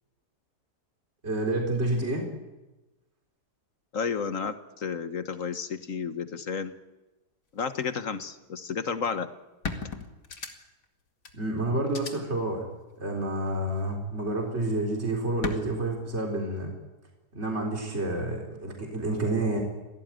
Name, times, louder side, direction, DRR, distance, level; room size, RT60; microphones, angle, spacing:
voice 1, 1.2-2.3 11.3-12.6 13.0-16.7 17.3-19.6, right 2 dB, 40° right, 0 dB, 4.3 m, -29 dB
voice 2, 3.9-6.7 7.5-9.3, left 6 dB, 55° left, 9 dB, 1.7 m, -32 dB
sound 1, 9.0-9.1 9.6-10.9 11.3-11.4 11.9-12.1 13.5-13.9 15.4-15.6, left 4 dB, 90° left, 2.8 m, -35 dB
27.0 x 18.0 x 9.2 m, 1.1 s
omnidirectional pair, 1.7 m